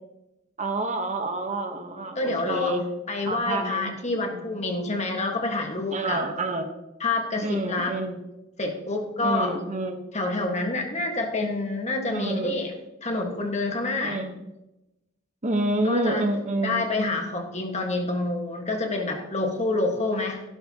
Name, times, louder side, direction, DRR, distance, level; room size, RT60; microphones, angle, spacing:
voice 1, 0.6-2.8 3.3-3.9 4.3-4.4 5.9-6.7 7.4-8.2 9.2-10.0 12.1-12.6 14.0-14.5 15.4-16.8, right 2 dB, 35° right, 5 dB, 1.1 m, -28 dB
voice 2, 2.1-2.8 3.1-6.2 7.0-8.0 8.6-9.6 10.1-12.7 13.0-14.2 15.8-16.3 16.6-20.4, left 2 dB, 35° left, 3 dB, 1.5 m, -27 dB
16.0 x 12.0 x 2.9 m, 0.97 s
head